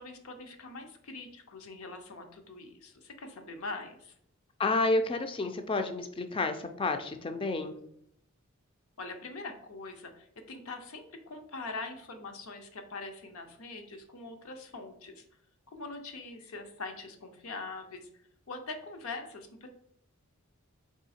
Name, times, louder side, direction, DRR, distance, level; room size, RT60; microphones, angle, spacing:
voice 1, 0.0-4.1 9.0-15.2 15.7-18.1 18.5-19.7, left 3 dB, 75° left, 5 dB, 0.6 m, -43 dB
voice 2, 4.6-7.8, left 2 dB, 25° left, 7 dB, 0.3 m, -30 dB
3.6 x 3.1 x 4.2 m, 0.72 s
head